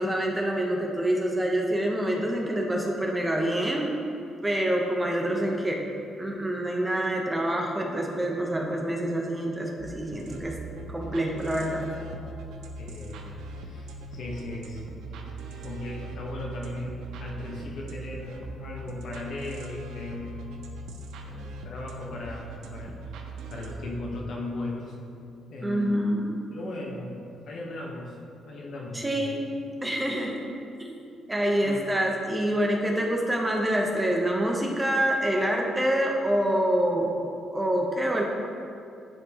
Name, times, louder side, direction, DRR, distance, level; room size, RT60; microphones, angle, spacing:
voice 1, 0.0-3.9 4.4-5.8 6.2-10.6 10.9-11.9 25.6-26.4 28.9-29.5 29.8-30.5 30.8-37.1 37.5-38.2, right 1 dB, 15° right, 0 dB, 0.9 m, -26 dB
sound 1, 9.8-23.7, right 2 dB, 85° right, 0.6 m, -40 dB
voice 2, 12.8-20.6 21.2-23.0 23.5-25.0 25.5-26.0 26.5-27.2 27.5-28.2 28.4-29.5 31.6-31.8, left 2 dB, 65° left, -2 dB, 1.2 m, -37 dB
10.5 x 4.3 x 3.0 m, 2.5 s
cardioid pair, 90°, 0 cm